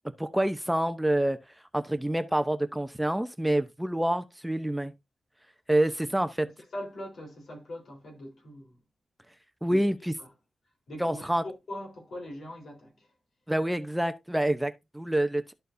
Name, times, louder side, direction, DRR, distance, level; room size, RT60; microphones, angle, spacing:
voice 1, 0.2-1.4 1.7-4.9 5.7-6.5 9.6-9.9 11.0-11.4 13.5-15.5, right 1 dB, 5° right, 0.8 m, -27 dB
voice 2, 6.4-8.8 9.7-9.8 10.2-10.3 10.9-13.1, left 1 dB, 70° left, 3.9 m, -42 dB
13.0 x 4.5 x 2.7 m
cardioid pair, 75°, 0 cm